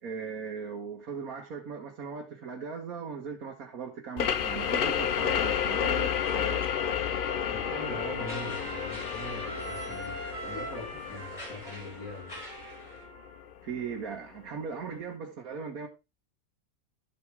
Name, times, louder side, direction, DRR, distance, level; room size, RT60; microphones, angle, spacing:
voice 1, 0.0-6.6 13.6-15.9, right 6 dB, 75° right, 1.6 m, -38 dB
sound 1, 4.2-13.5, left 8 dB, 55° left, 0.6 m, -31 dB
sound 2, 4.5-13.1, equal, 25° left, 3.8 m, -48 dB
Trumpet, 6.8-13.4, right 1 dB, 55° right, 2.9 m, -43 dB
voice 2, 7.5-12.4, left 1 dB, 75° left, 7.3 m, -42 dB
12.0 x 7.7 x 3.4 m
omnidirectional pair, 1.5 m